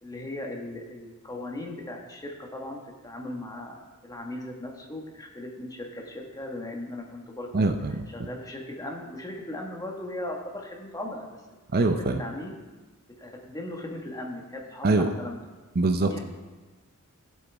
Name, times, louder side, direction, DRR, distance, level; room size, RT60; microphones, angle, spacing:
voice 1, 0.0-7.6 8.1-11.3 11.8-12.6 13.2-15.4 16.1-16.2, left 1 dB, 15° left, 0 dB, 1.5 m, -38 dB
voice 2, 7.5-7.9 11.7-12.2 14.8-15.1 15.8-16.2, right 3 dB, 45° right, 7 dB, 0.6 m, -23 dB
16.0 x 7.9 x 3.5 m, 1.2 s
head